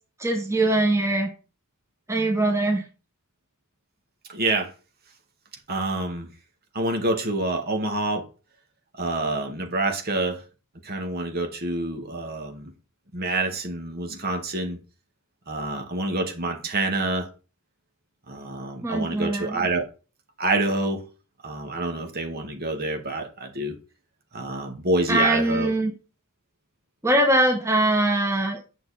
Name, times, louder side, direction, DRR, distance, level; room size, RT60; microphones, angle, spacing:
voice 1, 0.2-1.3 2.1-2.8 18.8-19.7 25.1-25.9 27.0-28.6, right 1 dB, 15° right, 1.8 m, -22 dB
voice 2, 4.3-4.7 5.7-6.3 6.7-8.3 9.0-10.4 10.8-12.7 13.1-14.8 15.5-17.3 18.3-19.9 20.4-21.1 21.4-23.8 24.3-25.7, right 2 dB, 45° right, 2.0 m, -27 dB
9.5 x 6.8 x 4.3 m
head